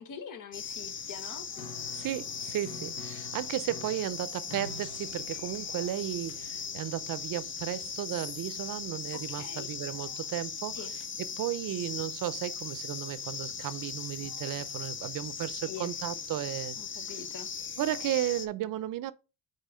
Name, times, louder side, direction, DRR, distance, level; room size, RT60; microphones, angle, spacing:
voice 1, 0.0-1.4 9.1-9.7 10.7-10.9 15.6-15.9 16.8-17.5, left 7 dB, 65° left, 1.2 m, -44 dB
sound 1, 0.5-18.5, left 6 dB, 35° left, 0.6 m, -39 dB
Piano, 1.5-10.0, left 4 dB, 85° left, 1.2 m, -49 dB
voice 2, 1.9-10.8 11.3-16.8 17.8-19.1, right 13 dB, 65° right, 0.6 m, -34 dB
5.5 x 3.9 x 5.0 m
cardioid pair, 130°, 35 cm